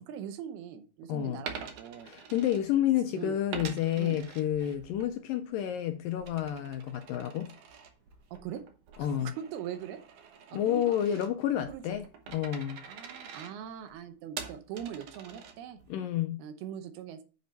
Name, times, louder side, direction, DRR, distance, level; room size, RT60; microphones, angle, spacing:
voice 1, 0.0-2.1 3.2-3.3 3.9-4.2 8.3-8.6 9.0-10.0 10.5-11.0 11.6-12.0 12.9-15.8 16.4-17.2, right 9 dB, 85° right, 2.9 m, -41 dB
voice 2, 1.1-1.4 2.0-7.5 9.0-9.3 10.5-12.8 15.9-16.4, left 11 dB, 80° left, 2.1 m, -30 dB
Coin (dropping), 1.5-3.1 3.5-5.1 5.5-15.9, right 6 dB, 70° right, 1.5 m, -46 dB
8.0 x 5.2 x 5.4 m
omnidirectional pair, 4.4 m